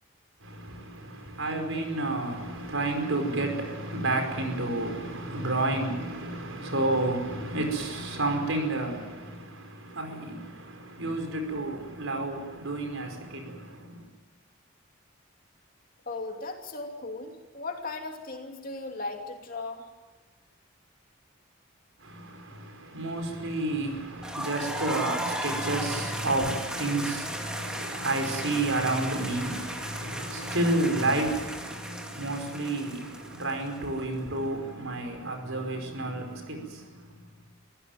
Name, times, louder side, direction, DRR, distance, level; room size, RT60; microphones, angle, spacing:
voice 1, 0.4-14.1 22.0-37.1, right 2 dB, 75° right, 5.1 m, -31 dB
voice 2, 16.1-19.9, left 3 dB, 45° left, 2.9 m, -37 dB
sound 1, 24.2-34.0, equal, 5° right, 2.2 m, -36 dB
24.5 x 16.0 x 9.2 m
head